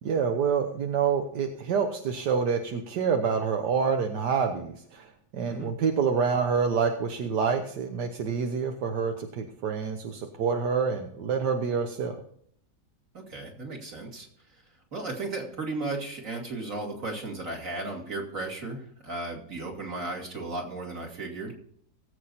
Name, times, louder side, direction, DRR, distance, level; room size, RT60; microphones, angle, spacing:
voice 1, 0.0-12.2, right 6 dB, 80° right, 4 dB, 1.6 m, -27 dB
voice 2, 13.1-14.3 14.9-21.6, right 2 dB, 50° right, 0 dB, 3.2 m, -35 dB
18.5 x 8.2 x 4.2 m, 0.63 s
omnidirectional pair, 1.8 m